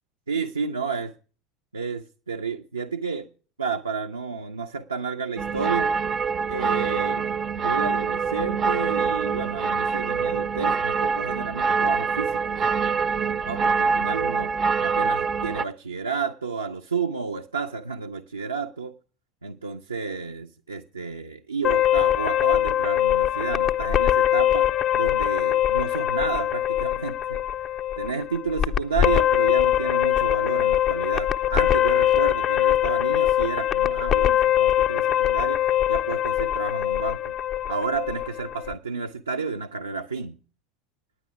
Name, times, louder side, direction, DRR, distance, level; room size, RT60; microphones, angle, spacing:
voice 1, 0.3-1.1 1.7-3.3 3.6-5.9 6.5-7.3 7.6-12.6 13.4-14.5 14.8-18.9 19.4-24.7 24.9-27.4 28.0-35.6 35.9-37.4 37.7-40.4, right 5 dB, 85° right, 4 dB, 0.6 m, -31 dB
sound 1, 5.4-15.6, right 5 dB, 35° right, 0.5 m, -25 dB
sound 2, 21.6-38.7, left 12 dB, 35° left, 0.5 m, -22 dB
9.6 x 9.4 x 6.9 m, 0.39 s
figure-of-eight pair, 75°, 0 cm